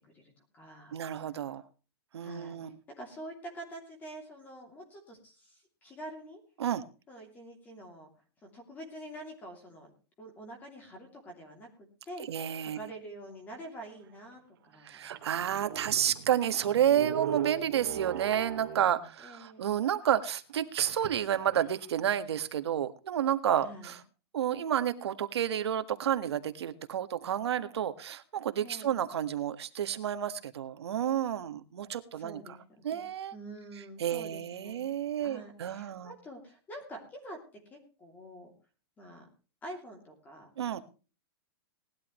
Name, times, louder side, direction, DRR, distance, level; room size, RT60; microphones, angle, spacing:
voice 1, 0.1-1.0 2.2-6.4 7.1-8.1 8.4-9.9 10.2-11.7 12.0-12.3 12.6-15.0 19.2-19.7 23.6-23.9 28.6-29.0 32.1-33.1 33.3-34.9 35.2-38.5 39.0-39.3 39.6-40.5, right 1 dB, 10° left, 3 dB, 2.8 m, -46 dB
voice 2, 0.9-1.6 2.1-2.8 6.6-6.8 12.2-12.8 14.8-24.0 24.3-32.4 32.8-33.3 34.0-36.1 40.6-40.8, right 10 dB, 75° right, 10 dB, 1.6 m, -30 dB
sound 1, 14.1-14.2 14.7-14.8 15.0-19.1 20.8-21.9, right 11 dB, 50° right, 2.4 m, -40 dB
19.0 x 12.0 x 3.1 m, 0.34 s
hypercardioid pair, 170°, 14 cm